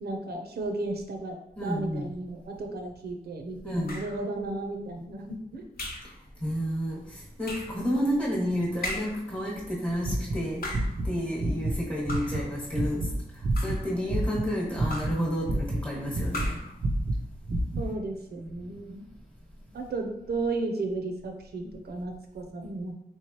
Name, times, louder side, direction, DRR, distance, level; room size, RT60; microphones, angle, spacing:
voice 1, 0.0-1.4 1.6-5.6 17.8-19.0 19.7-22.9, right 2 dB, 90° right, 3 dB, 0.5 m, -34 dB
voice 2, 1.5-2.1 3.6-4.0 6.4-16.6 17.7-17.8, equal, 25° left, -6 dB, 1.0 m, -31 dB
sound 1, 3.9-4.3 5.8-6.2 7.4-7.8 8.8-9.3 10.4-11.0 12.1-12.5 13.3-13.9 14.9-15.3 16.3-16.8, left 1 dB, 75° left, 0.7 m, -37 dB
sound 2, 10.0-11.1 11.4-11.8 12.1-14.5 14.8-16.5 16.8-17.9, right 1 dB, 40° right, 0.4 m, -28 dB
3.4 x 3.1 x 2.9 m, 0.83 s
wide cardioid pair, 135°, 16 cm